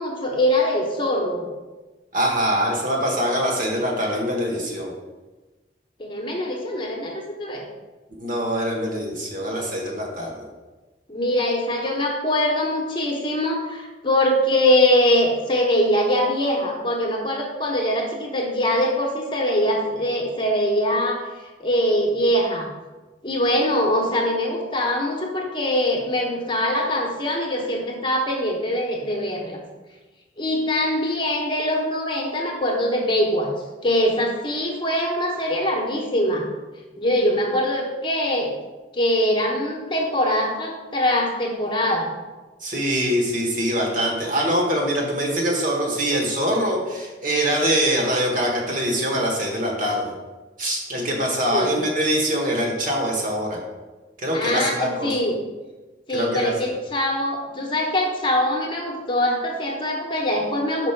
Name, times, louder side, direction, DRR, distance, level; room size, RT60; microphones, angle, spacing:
voice 1, 0.0-1.4 6.0-7.6 11.1-21.2 21.6-22.7 23.2-29.6 30.4-33.5 33.8-36.5 37.0-38.5 38.9-42.1 51.5-51.8 54.3-55.4 56.1-60.9, left 1 dB, 30° left, 0 dB, 1.0 m, -23 dB
voice 2, 2.1-4.9 8.2-10.4 42.6-50.0 50.6-53.6 54.2-55.1 56.1-56.5, equal, 50° right, -1 dB, 1.5 m, -23 dB
5.2 x 4.3 x 5.8 m, 1.2 s
head